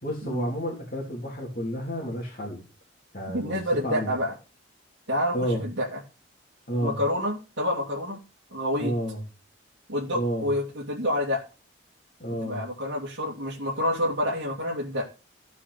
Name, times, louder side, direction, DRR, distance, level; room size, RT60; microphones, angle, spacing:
voice 1, 0.0-2.6 3.1-3.6 3.8-4.1 5.3-5.6 6.7-7.0 8.8-9.2 10.1-10.5 12.2-12.6, equal, 45° left, -3 dB, 3.2 m, -30 dB
voice 2, 3.3-4.3 5.1-6.0 6.8-8.2 8.5-8.9 9.9-11.4 12.4-15.1, left 1 dB, 65° right, -4 dB, 2.6 m, -28 dB
14.5 x 7.3 x 4.2 m, 0.33 s
head